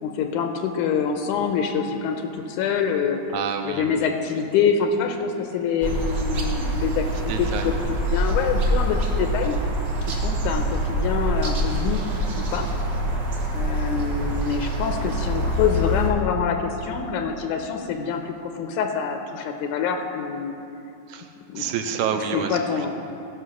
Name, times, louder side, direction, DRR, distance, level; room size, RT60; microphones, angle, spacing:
voice 1, 0.0-3.2 3.6-7.7 8.1-9.6 10.1-12.0 12.4-12.7 13.5-20.6 21.5-21.6 22.3-22.9, left 6 dB, 85° left, 5 dB, 2.1 m, -25 dB
voice 2, 3.3-4.0 7.3-7.9 21.1-21.3 21.6-22.9, right 7 dB, 80° right, 5 dB, 2.0 m, -28 dB
sound 1, 5.8-16.1, equal, 55° right, 1.2 m, -25 dB
16.0 x 5.6 x 6.3 m, 2.7 s
omnidirectional pair, 3.6 m